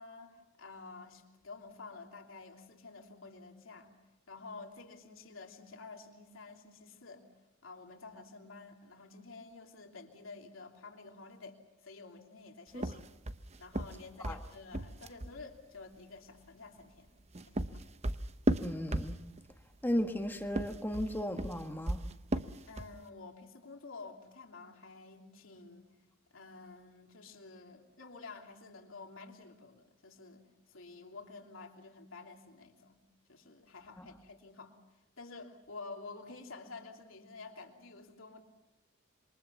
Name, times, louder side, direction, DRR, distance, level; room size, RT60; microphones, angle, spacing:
voice 1, 0.0-3.9 4.3-7.2 7.6-13.1 13.6-17.1 17.4-17.8 22.6-25.9 26.3-33.0 33.3-34.7 35.2-38.4, left 3 dB, 70° left, 3 dB, 3.1 m, -50 dB
sound 1, 12.7-15.4 17.1-19.5 20.4-23.0, right 1 dB, 30° right, 0.8 m, -35 dB
voice 2, 18.6-19.2 19.8-22.0 34.0-34.1, equal, 10° left, 5 dB, 1.4 m, -35 dB
27.0 x 23.5 x 7.0 m, 0.93 s
head